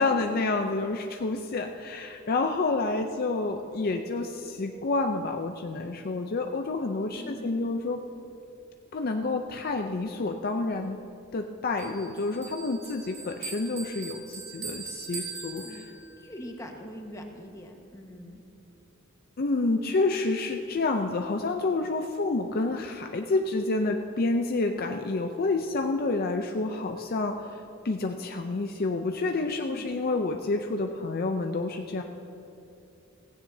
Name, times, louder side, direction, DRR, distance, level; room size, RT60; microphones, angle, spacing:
voice 1, 0.0-8.0 8.9-11.0 11.3-15.8 19.4-32.0, left 3 dB, 50° left, 4 dB, 0.5 m, -29 dB
voice 2, 7.2-7.6 15.6-15.8 16.2-18.4 29.5-29.9, equal, 15° left, 1 dB, 1.3 m, -43 dB
Bell, 11.8-16.3, right 5 dB, 60° right, 2.5 m, -41 dB
16.0 x 15.5 x 2.7 m, 2.8 s
head